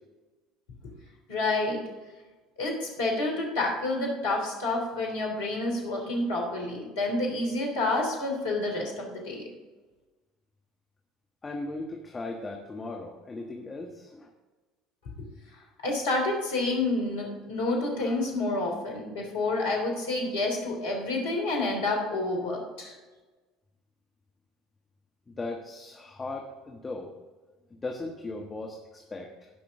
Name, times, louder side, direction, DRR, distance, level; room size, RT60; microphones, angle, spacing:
voice 1, 1.3-1.8 2.6-9.5 15.8-22.9, left 2 dB, 70° left, 0 dB, 3.2 m, -29 dB
voice 2, 11.4-14.3 25.3-27.1 27.7-29.5, left 2 dB, 25° left, 1 dB, 1.4 m, -38 dB
17.0 x 5.9 x 3.7 m, 1.3 s
figure-of-eight pair, 65°, 0 cm